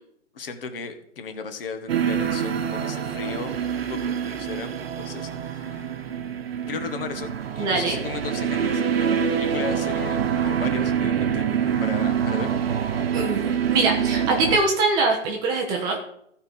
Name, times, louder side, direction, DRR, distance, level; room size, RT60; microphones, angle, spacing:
voice 1, 0.3-3.6 3.9-5.9 6.7-12.5, left 5 dB, 50° left, 7 dB, 1.6 m, -36 dB
sound 1, 1.9-14.6, right 8 dB, 50° right, 1.1 m, -25 dB
voice 2, 7.6-8.0 13.1-16.0, right 3 dB, 10° right, 1 dB, 0.7 m, -23 dB
14.5 x 4.9 x 5.3 m, 0.71 s
hypercardioid pair, 155°, 37 cm